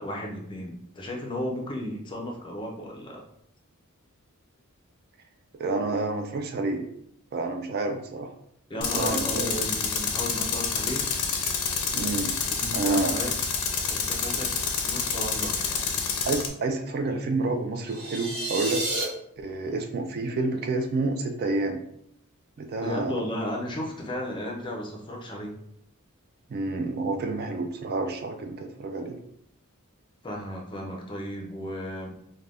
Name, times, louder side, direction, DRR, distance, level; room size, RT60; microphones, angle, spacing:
voice 1, 0.0-3.2 8.7-11.1 12.6-13.3 13.9-14.5 14.8-16.0 22.8-25.5 30.2-32.1, left 1 dB, 20° left, 0 dB, 0.4 m, -34 dB
voice 2, 5.6-6.9 7.3-8.3 8.8-9.5 11.9-12.3 12.7-13.1 16.3-18.8 19.4-21.8 22.6-23.2 26.5-29.2, right 3 dB, 45° right, 4 dB, 0.3 m, -29 dB
Tools, 8.8-16.5, left 6 dB, 85° left, 0.5 m, -28 dB
sound 1, 17.8-19.0, right 2 dB, 80° right, 0.9 m, -31 dB
2.4 x 2.2 x 3.3 m, 0.71 s
head